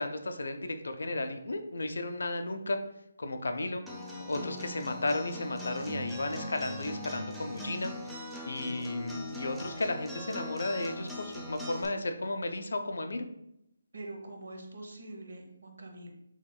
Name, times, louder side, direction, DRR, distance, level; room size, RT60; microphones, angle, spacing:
voice 1, 0.0-2.8 3.2-3.8 4.3-8.1 8.5-13.3, left 2 dB, 75° left, 7 dB, 0.5 m, -34 dB
Acoustic guitar, 3.9-11.8, left 1 dB, ahead, 0.5 m, -41 dB
voice 2, 13.9-16.1, right 2 dB, 75° right, 3 dB, 0.9 m, -44 dB
6.3 x 2.9 x 2.2 m, 0.83 s
hypercardioid pair, 160°, 0 cm